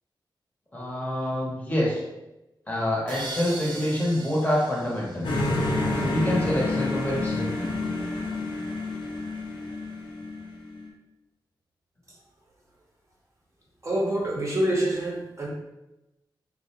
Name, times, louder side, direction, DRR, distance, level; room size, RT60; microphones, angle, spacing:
voice 1, 0.7-2.0 2.7-5.3 6.0-7.7, left 1 dB, 20° left, -4 dB, 0.8 m, -27 dB
sound 1, 3.1-5.9, right 2 dB, 75° right, 0.5 m, -39 dB
sound 2, 5.2-10.9, left 2 dB, 80° left, 0.5 m, -29 dB
voice 2, 13.8-15.5, right 1 dB, 40° right, -3 dB, 0.6 m, -26 dB
2.4 x 2.1 x 2.7 m, 0.96 s
wide cardioid pair, 80°, 8 cm